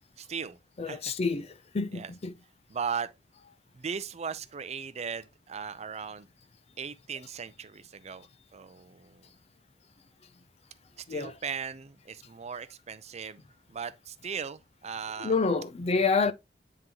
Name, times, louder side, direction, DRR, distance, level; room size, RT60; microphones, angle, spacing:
voice 1, 0.2-0.6 0.9-1.1 1.9-2.1 2.7-3.1 3.7-6.3 6.8-9.3 11.0-13.4 13.7-15.4, right 6 dB, 40° right, 0.5 m, -38 dB
voice 2, 0.8-2.3 11.1-11.4 15.2-16.3, left 4 dB, 35° left, 0.5 m, -28 dB
9.2 x 3.8 x 2.9 m
head